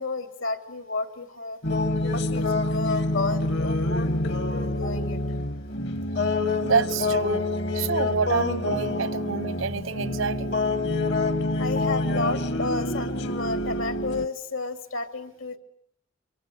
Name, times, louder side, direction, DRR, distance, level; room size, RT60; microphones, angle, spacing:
voice 1, 0.0-1.6 2.0-5.2 9.0-9.1 11.6-15.6, left 3 dB, 75° left, 2.7 m, -32 dB
sound 1, 1.6-14.3, left 2 dB, 55° left, 1.3 m, -27 dB
voice 2, 6.3-7.5 7.7-10.6, right 5 dB, 75° right, 1.1 m, -27 dB
26.0 x 24.0 x 8.1 m
head